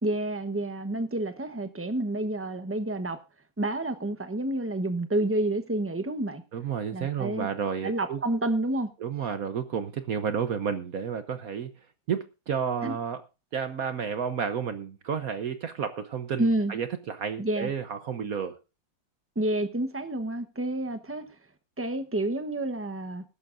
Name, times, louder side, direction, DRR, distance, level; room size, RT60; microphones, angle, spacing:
voice 1, 0.0-3.2 3.6-6.4 6.9-7.5 7.8-8.9 12.8-12.9 16.4-16.7 17.4-17.7 19.4-21.2 21.8-23.2, right 1 dB, 15° right, 0.5 m, -29 dB
voice 2, 6.5-8.2 9.0-11.7 12.1-13.2 13.5-18.5, right 7 dB, 60° right, 1.1 m, -31 dB
20.5 x 11.5 x 2.6 m
omnidirectional pair, 2.1 m